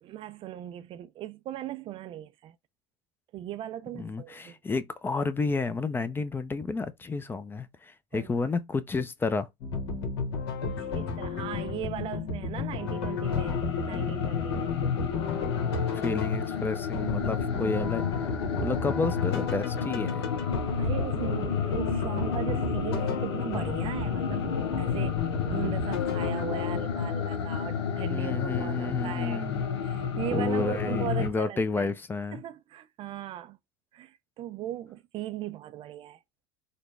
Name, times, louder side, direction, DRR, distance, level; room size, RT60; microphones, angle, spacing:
voice 1, 0.0-2.5 3.3-4.6 8.1-8.3 10.6-13.6 13.9-14.7 15.9-16.1 20.8-24.4 24.8-29.5 29.8-31.9 32.3-33.6 33.9-36.2, right 12 dB, 40° right, 0.4 m, -38 dB
voice 2, 3.9-9.5 13.6-14.2 15.9-18.0 18.6-20.2 28.1-29.6 30.3-32.4, left 3 dB, 15° left, 0.5 m, -31 dB
sound 1, 9.6-27.0, left 4 dB, 70° left, 1.4 m, -34 dB
sound 2, 13.2-31.3, left 7 dB, 85° left, 0.6 m, -31 dB
4.0 x 2.2 x 3.2 m
hypercardioid pair, 95°, 14 cm